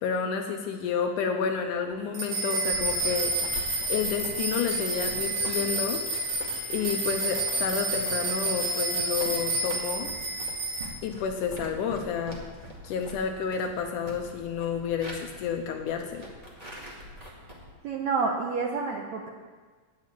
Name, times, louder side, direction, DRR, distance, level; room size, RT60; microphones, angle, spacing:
voice 1, 0.0-3.3 3.9-6.0 6.7-10.1 11.0-12.4 12.8-16.2, left 6 dB, 75° left, 4 dB, 2.0 m, -30 dB
sound 1, 2.1-10.9, right 2 dB, 55° right, 4.0 m, -29 dB
sound 2, 2.7-17.7, equal, 20° right, 1.0 m, -45 dB
voice 2, 17.8-19.3, right 4 dB, 75° right, 1 dB, 1.7 m, -28 dB
9.0 x 7.4 x 9.0 m, 1.4 s
omnidirectional pair, 4.0 m